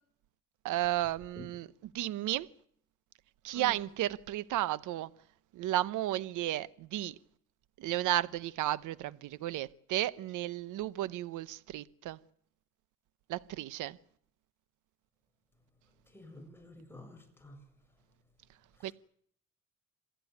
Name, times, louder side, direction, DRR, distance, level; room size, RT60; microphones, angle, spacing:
voice 1, 0.6-2.5 3.4-5.1 5.5-7.1 7.8-12.2 13.3-14.0 18.8-18.9, right 14 dB, 90° right, 0.9 m, -33 dB
voice 2, 16.1-17.6, left 2 dB, 5° left, 7.5 m, -50 dB
27.0 x 15.0 x 9.5 m
cardioid pair, 90°, 30 cm